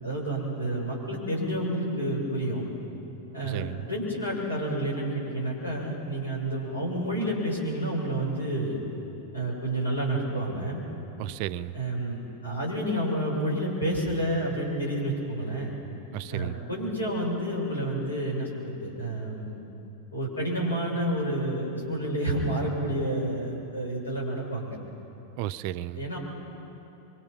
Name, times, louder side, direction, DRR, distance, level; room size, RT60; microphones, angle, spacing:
voice 1, 0.0-2.7 3.3-8.8 9.3-10.8 11.7-15.7 16.3-19.6 20.1-24.8 25.9-26.2, right 1 dB, 75° left, -2 dB, 6.7 m, -29 dB
voice 2, 3.4-3.9 11.2-11.8 16.1-16.6 25.4-26.0, right 13 dB, 45° right, 15 dB, 0.5 m, -34 dB
26.5 x 24.5 x 5.8 m, 2.9 s
figure-of-eight pair, 90°, 0 cm